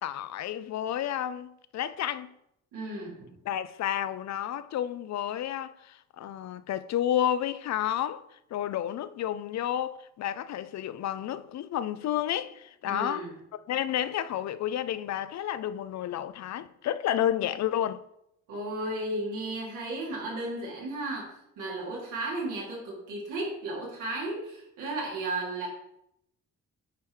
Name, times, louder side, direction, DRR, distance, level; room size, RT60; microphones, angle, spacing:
voice 1, 0.0-2.3 3.5-8.2 8.5-13.3 13.7-18.0, left 11 dB, 65° left, 0.6 m, -31 dB
voice 2, 2.7-3.4 12.8-13.4 18.5-25.7, right 2 dB, 85° right, 3.2 m, -34 dB
9.0 x 4.6 x 4.8 m
cardioid pair, 90°, 30 cm